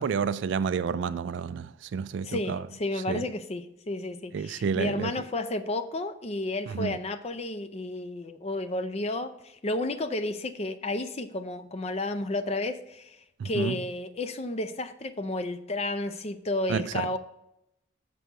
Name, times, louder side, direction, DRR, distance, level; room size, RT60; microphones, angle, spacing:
voice 1, 0.0-2.6 3.1-3.2 4.3-5.1 6.7-6.9 13.4-13.8 16.7-17.1, right 6 dB, 65° right, 0.3 m, -30 dB
voice 2, 2.2-13.2 13.4-17.2, left 2 dB, 35° left, 0.5 m, -32 dB
6.8 x 6.1 x 4.6 m
head